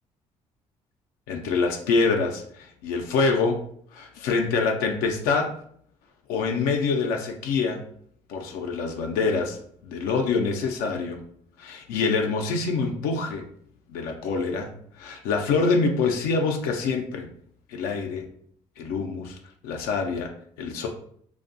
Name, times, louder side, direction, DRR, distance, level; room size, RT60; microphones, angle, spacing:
voice 1, 1.3-3.6 3.9-5.5 6.3-7.8 8.3-9.6 9.8-11.2 11.6-13.4 13.9-14.7 15.0-17.3 17.7-18.3 18.8-19.4 19.6-20.3 20.6-20.9, left 4 dB, 80° left, 3 dB, 0.4 m, -25 dB
2.5 x 2.2 x 2.5 m, 0.62 s
supercardioid pair, 60°, 15 cm